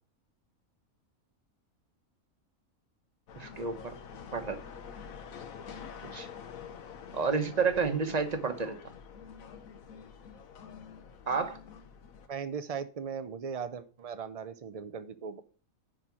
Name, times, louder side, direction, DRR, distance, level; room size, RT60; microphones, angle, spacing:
sound 1, 3.3-12.3, left 6 dB, 75° left, 1.3 m, -47 dB
voice 1, 3.4-4.0 4.3-4.6 6.1-6.3 7.1-8.7 11.3-11.6, right 5 dB, 30° right, 7 dB, 1.0 m, -30 dB
voice 2, 12.3-15.4, right 6 dB, 75° right, 10 dB, 0.3 m, -38 dB
10.0 x 4.3 x 6.0 m, 0.39 s
omnidirectional pair, 1.5 m